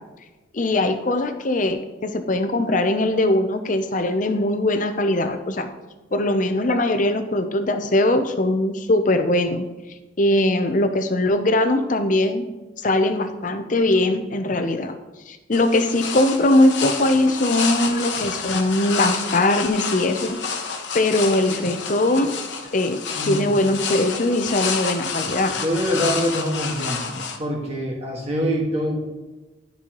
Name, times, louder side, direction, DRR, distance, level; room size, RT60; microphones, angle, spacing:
voice 1, 0.5-5.7 6.1-9.6 10.2-12.4 12.8-15.0 15.3-20.4 20.9-22.4 22.7-25.5, left 1 dB, 40° left, 8 dB, 0.6 m, -21 dB
sound 1, 15.5-27.4, left 5 dB, 65° left, 0.9 m, -29 dB
voice 2, 23.1-23.5 25.6-27.0 27.4-29.0, equal, 30° right, -2 dB, 1.6 m, -24 dB
12.0 x 5.5 x 3.0 m, 1.1 s
head